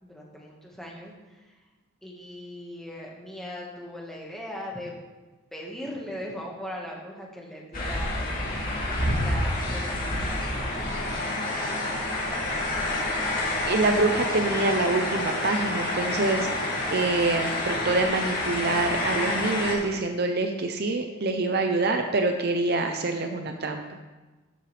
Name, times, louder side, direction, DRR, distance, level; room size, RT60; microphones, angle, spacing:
voice 1, 0.0-1.5 2.0-4.9 5.5-8.9 9.2-11.1, equal, ahead, -2 dB, 1.7 m, -39 dB
sound 1, 7.7-19.7, left 1 dB, 45° left, 2.4 m, -28 dB
voice 2, 13.6-23.8, right 2 dB, 50° right, 5 dB, 0.7 m, -26 dB
13.0 x 7.6 x 3.4 m, 1.2 s
head